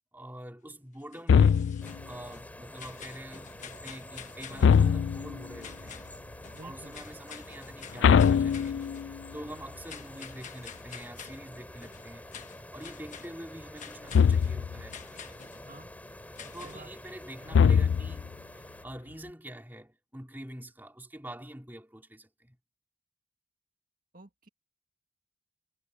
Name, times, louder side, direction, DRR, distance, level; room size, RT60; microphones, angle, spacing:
voice 1, 0.1-1.6 2.0-6.1 6.6-8.8 9.3-12.3 12.7-15.5 16.5-22.6, right 1 dB, 10° right, 3.1 m, -46 dB
sound 1, 1.0-2.5 2.8-4.9 5.6-6.2 6.4-9.1 9.9-11.4 11.8-13.3 13.8-14.6 14.9-15.7 16.3-16.9, left 7 dB, 35° left, 1.2 m, -48 dB
sound 2, 1.3-2.0 4.6-5.4 8.0-9.2 14.1-14.8 17.5-18.3, left 7 dB, 65° left, 0.3 m, -22 dB
sound 3, 1.8-18.8, left 1 dB, 10° left, 6.5 m, -48 dB
voice 2, 6.5-7.0 15.7-15.9 16.6-16.9 24.1-24.5, right 2 dB, 45° right, 1.8 m, -49 dB
head